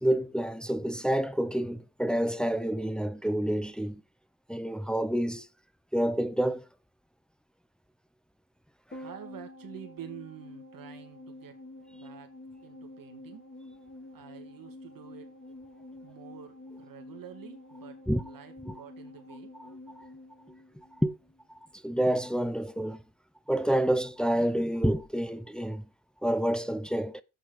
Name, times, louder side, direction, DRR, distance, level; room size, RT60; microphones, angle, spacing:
voice 1, 0.0-4.0 4.5-5.5 5.9-6.6 18.1-18.2 18.7-18.8 20.0-20.1 21.0-21.1 21.8-23.0 23.5-25.8 26.2-27.2, right 1 dB, ahead, 0.7 m, -28 dB
sound 1, 8.9-21.4 21.7-21.8, left 1 dB, 25° left, 5.3 m, -48 dB
voice 2, 9.0-11.6 11.9-12.3 12.6-13.4 14.1-15.4 16.0-18.0 18.2-19.5, right 10 dB, 55° right, 1.8 m, -48 dB
7.9 x 7.2 x 5.0 m
cardioid pair, 90°, 41 cm